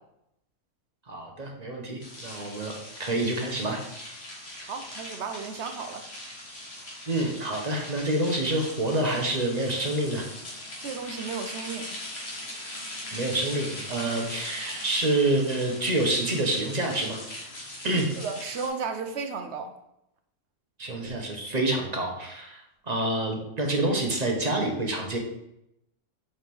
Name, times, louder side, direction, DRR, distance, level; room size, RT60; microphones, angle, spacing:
voice 1, 1.1-4.2 7.1-10.3 13.1-17.2 17.8-18.1 20.8-25.2, right 1 dB, 30° right, 1 dB, 0.9 m, -27 dB
sound 1, 2.0-18.7, left 1 dB, 45° left, 1.7 m, -40 dB
voice 2, 4.6-6.1 10.8-12.0 18.2-19.7, right 5 dB, 65° right, 6 dB, 0.8 m, -34 dB
4.7 x 4.4 x 5.3 m, 0.81 s
omnidirectional pair, 1.5 m